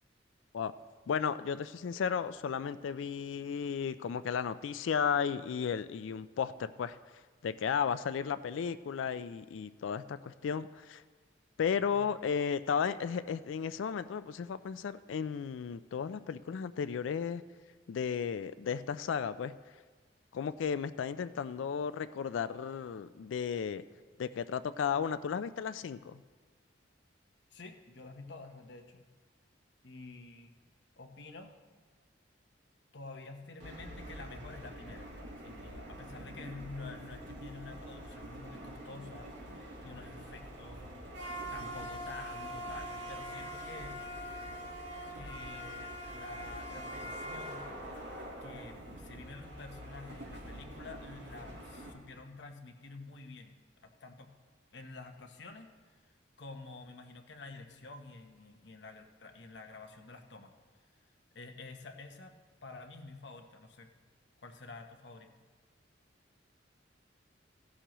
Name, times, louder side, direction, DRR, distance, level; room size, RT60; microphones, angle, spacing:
voice 1, 1.1-7.0 7.4-11.0 11.6-17.4 17.9-19.5 20.3-23.8 24.2-26.2, left 7 dB, 85° left, 13 dB, 0.3 m, -34 dB
voice 2, 27.5-29.0 29.8-30.5 31.0-31.6 32.9-35.1 35.4-40.8 41.5-44.0 45.1-47.7 48.4-53.6 53.8-54.3 54.7-56.0 56.4-60.5 61.3-62.3 62.6-64.0 64.4-65.3, left 3 dB, 65° left, 4 dB, 0.9 m, -49 dB
sound 1, 33.6-51.9, equal, 65° right, 1.7 m, -44 dB
15.0 x 11.5 x 3.0 m, 1.5 s
head